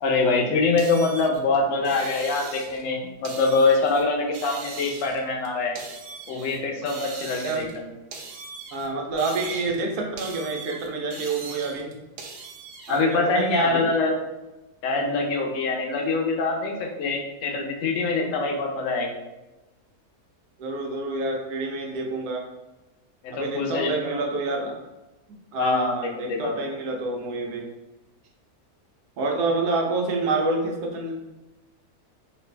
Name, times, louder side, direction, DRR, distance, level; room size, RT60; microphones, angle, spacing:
voice 1, 0.0-5.8 6.3-7.8 12.9-14.1 14.8-19.1 23.2-24.2 25.5-26.5, left 3 dB, 65° left, 1 dB, 1.0 m, -24 dB
sound 1, 0.8-2.9 3.2-4.0 4.3-6.6 6.8-7.8 8.1-9.8 10.2-13.0, right 4 dB, 70° right, 0.9 m, -40 dB
voice 2, 8.7-11.9 12.9-13.9 20.6-22.5 23.3-24.8 25.5-27.7 29.2-31.1, right 3 dB, 85° right, 1 dB, 1.2 m, -28 dB
3.3 x 2.5 x 3.2 m, 1.0 s
omnidirectional pair, 1.6 m